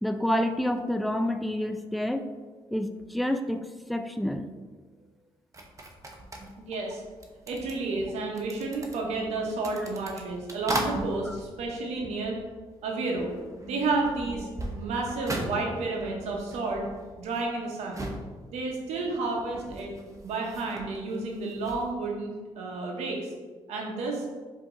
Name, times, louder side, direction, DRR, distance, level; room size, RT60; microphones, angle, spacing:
voice 1, 0.0-2.3 2.7-4.5 11.3-11.4, left 1 dB, ahead, 7 dB, 0.4 m, -28 dB
sound 1, 5.5-12.8 13.1-21.9, right 1 dB, 30° right, 0.7 m, -39 dB
voice 2, 6.6-7.0 7.5-12.4 12.8-13.3 13.7-14.5 14.7-16.9 17.2-18.1 18.5-19.9 20.2-23.3 23.7-24.2, right 3 dB, 90° right, 0 dB, 0.9 m, -31 dB
4.9 x 2.9 x 3.7 m, 1.4 s
cardioid pair, 75°, 11 cm